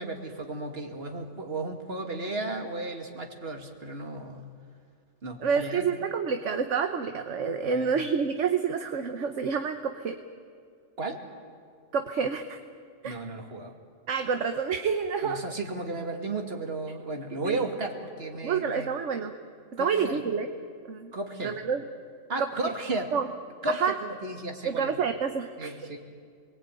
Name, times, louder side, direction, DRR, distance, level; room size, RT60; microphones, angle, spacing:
voice 1, 0.0-4.5 5.2-5.9 7.7-7.9 11.0-11.2 13.0-13.7 15.2-18.9 19.8-20.2 21.1-21.6 22.3-23.1 23.6-25.0 25.6-26.0, right 2 dB, 50° right, 4 dB, 2.6 m, -34 dB
voice 2, 5.4-10.2 11.9-12.6 13.0-13.2 14.1-15.4 17.4-17.6 18.4-19.3 19.7-20.5 20.8-21.1 21.4-21.9 22.4-22.5 23.1-23.3 23.7-23.9 24.6-25.7, right 6 dB, 70° right, 7 dB, 1.4 m, -28 dB
28.0 x 21.0 x 9.2 m, 2.2 s
omnidirectional pair, 1.3 m